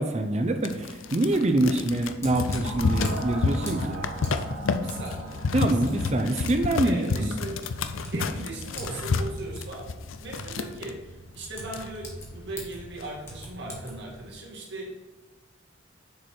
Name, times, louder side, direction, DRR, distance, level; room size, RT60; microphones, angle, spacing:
voice 1, 0.0-4.1 5.5-7.3, right 1 dB, 35° right, 7 dB, 0.6 m, -25 dB
sound 1, 0.6-10.9 11.4-11.5 11.6-12.3 12.8-13.1, left 4 dB, 90° left, 0.5 m, -30 dB
Typing, 2.0-14.3, equal, 15° left, 1.5 m, -43 dB
sound 2, 2.6-7.3, right 2 dB, 90° right, 1.7 m, -39 dB
voice 2, 4.8-6.2 6.8-7.6 8.1-9.9 10.2-14.9, right 2 dB, 60° right, -2 dB, 1.8 m, -38 dB
6.7 x 4.8 x 4.5 m, 1.2 s
head